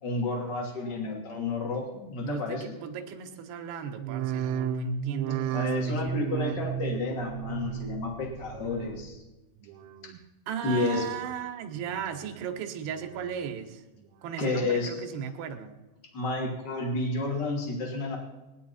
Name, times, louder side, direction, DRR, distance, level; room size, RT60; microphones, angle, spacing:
voice 1, 0.0-2.7 5.5-9.2 10.0-10.1 10.6-11.0 14.4-14.9 16.1-18.2, left 3 dB, 30° left, 1 dB, 2.6 m, -31 dB
voice 2, 2.2-6.3 10.5-13.8 14.2-15.8, right 8 dB, 70° right, 5 dB, 3.2 m, -36 dB
sound 1, 3.9-9.3 9.6-10.2 10.7-11.3 11.8-12.4 12.9-13.5 14.0-14.6 15.1-15.2, right 9 dB, 90° right, 3.0 m, -34 dB
20.0 x 10.5 x 4.3 m, 1.1 s
omnidirectional pair, 5.3 m